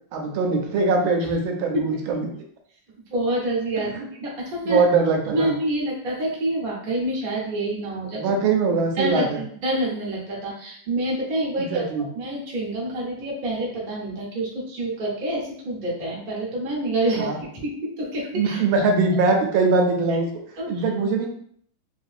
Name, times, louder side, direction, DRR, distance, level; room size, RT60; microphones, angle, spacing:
voice 1, 0.1-2.3 3.8-4.0 4.6-5.5 8.1-9.4 11.6-12.1 17.2-17.4 18.3-20.3 20.7-21.3, right 4 dB, 80° right, 3 dB, 1.4 m, -22 dB
voice 2, 3.1-3.9 4.2-4.9 5.3-8.2 9.0-11.8 12.1-18.6 20.6-20.8, right 1 dB, 45° right, -4 dB, 0.7 m, -27 dB
3.5 x 2.7 x 2.4 m, 0.62 s
omnidirectional pair, 2.2 m